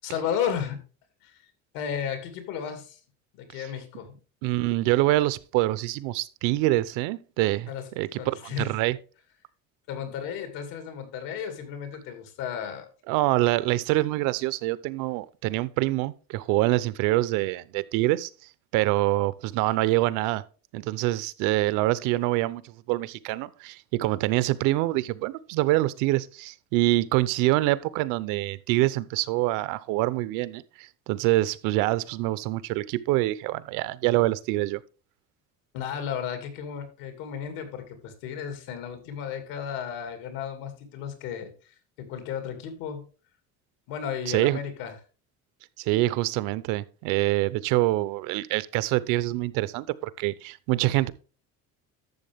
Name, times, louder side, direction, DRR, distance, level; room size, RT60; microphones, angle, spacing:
voice 1, 0.0-0.8 1.2-1.5 1.7-3.0 3.3-4.2 7.7-7.9 8.2-8.7 9.9-12.9 35.7-43.1 43.9-45.0, left 8 dB, 90° left, 2.6 m, -34 dB
voice 2, 4.4-7.7 8.0-9.0 13.1-18.3 18.7-20.4 20.7-34.8 44.3-44.6 45.8-51.1, right 17 dB, 85° right, 0.8 m, -25 dB
12.0 x 7.3 x 3.5 m
cardioid pair, 180°, 31 cm